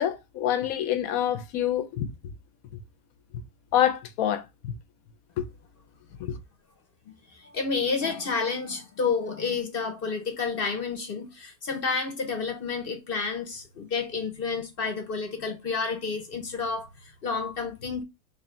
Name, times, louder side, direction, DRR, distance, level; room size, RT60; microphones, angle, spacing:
voice 1, 0.0-2.1 3.7-4.4 5.4-5.5 6.2-6.4, left 11 dB, 85° left, 1.1 m, -26 dB
voice 2, 7.3-18.0, left 5 dB, 50° left, 0.8 m, -30 dB
3.1 x 2.7 x 4.2 m
omnidirectional pair, 1.5 m